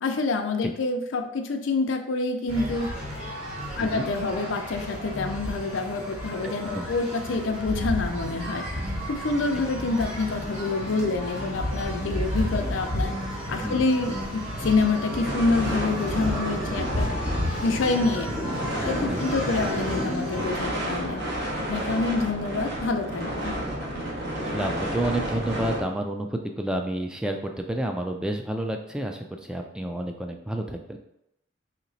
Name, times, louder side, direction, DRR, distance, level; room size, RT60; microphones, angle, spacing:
voice 1, 0.0-2.9 3.8-8.6 9.1-13.1 13.5-17.2 17.6-18.3 18.9-21.2 21.7-23.5, left 3 dB, 80° left, 5 dB, 0.5 m, -27 dB
sound 1, 2.5-20.4, equal, 30° right, 1.5 m, -32 dB
voice 2, 6.4-6.9 13.6-13.8 19.1-19.3 24.5-31.0, right 1 dB, 5° right, 3 dB, 0.3 m, -30 dB
sound 2, 15.2-25.8, right 1 dB, 65° right, 1.1 m, -31 dB
3.2 x 2.9 x 4.0 m, 0.79 s
head